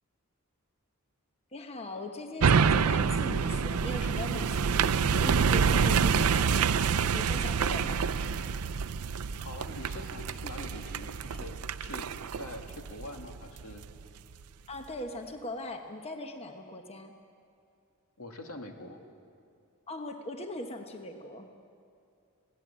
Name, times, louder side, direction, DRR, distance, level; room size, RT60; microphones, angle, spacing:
voice 1, 1.5-6.8 7.1-8.1 14.7-17.1 19.9-21.5, left 2 dB, 30° left, 4 dB, 1.1 m, -40 dB
sound 1, 2.4-13.9 14.3-14.4, right 6 dB, 85° right, 0.5 m, -27 dB
sound 2, 6.6-11.9, right 2 dB, 45° right, 1.1 m, -49 dB
voice 2, 9.4-12.1 12.3-13.9 18.2-19.0, left 1 dB, 80° left, 3 dB, 2.2 m, -44 dB
22.0 x 16.5 x 8.7 m, 2.4 s
head